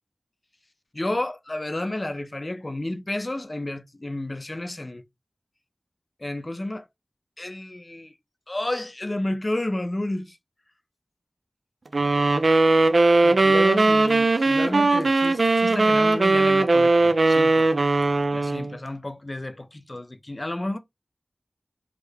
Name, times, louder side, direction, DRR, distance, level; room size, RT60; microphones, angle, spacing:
voice 1, 0.9-5.0 6.2-6.9 7.4-8.1 8.5-10.4 13.2-17.7 18.3-20.8, left 1 dB, 40° left, 0.4 m, -31 dB
sound 1, 11.9-18.7, right 2 dB, 70° right, 0.4 m, -19 dB
3.5 x 2.2 x 3.2 m
wide cardioid pair, 45°, 0 cm